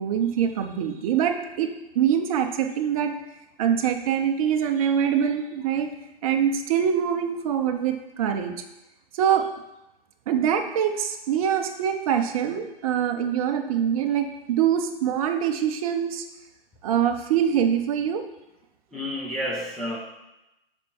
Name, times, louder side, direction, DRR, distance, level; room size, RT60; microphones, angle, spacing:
voice 1, 0.0-3.1 3.6-5.9 6.2-8.5 9.2-9.5 10.3-16.2 16.8-18.2, right 8 dB, 35° right, 4 dB, 0.7 m, -24 dB
voice 2, 18.9-20.0, left 1 dB, ahead, -4 dB, 0.7 m, -30 dB
6.7 x 4.3 x 4.5 m, 0.93 s
hypercardioid pair, 135°, 29 cm